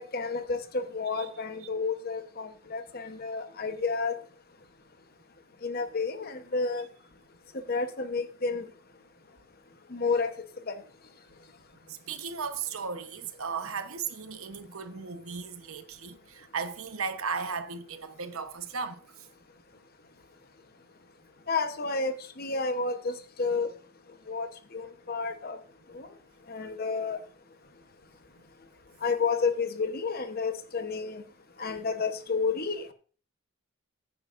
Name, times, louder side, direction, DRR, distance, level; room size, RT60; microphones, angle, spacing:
voice 1, 0.0-4.2 5.6-6.8 7.7-8.7 9.9-10.3 10.7-10.8 21.5-23.7 24.3-25.6 25.9-26.1 26.5-27.2 29.0-31.2 31.6-32.9, left 4 dB, 45° left, 1.0 m, -30 dB
voice 2, 11.9-19.0, right 5 dB, 75° right, 1.1 m, -36 dB
15.0 x 9.8 x 2.6 m
head